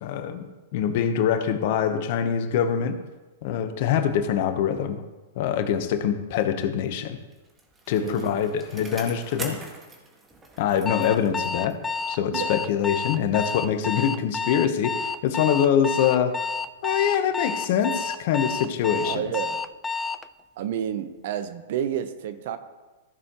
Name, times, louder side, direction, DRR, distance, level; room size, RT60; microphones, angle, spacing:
voice 1, 0.0-3.0 3.4-5.0 5.4-7.2 7.9-9.6 10.6-11.8 12.1-16.4 16.8-19.2, left 8 dB, 55° left, 9 dB, 0.9 m, -24 dB
Bicycle, 7.1-12.0 12.3-12.4, right 2 dB, 15° right, 1.6 m, -43 dB
voice 2, 8.0-8.3 12.3-12.5 19.0-19.6 20.6-22.6, right 9 dB, 60° right, 11 dB, 0.8 m, -30 dB
Alarm, 10.9-20.3, left 5 dB, 10° left, 0.3 m, -30 dB
15.0 x 6.4 x 3.0 m, 1.2 s
hypercardioid pair, 110°, 0 cm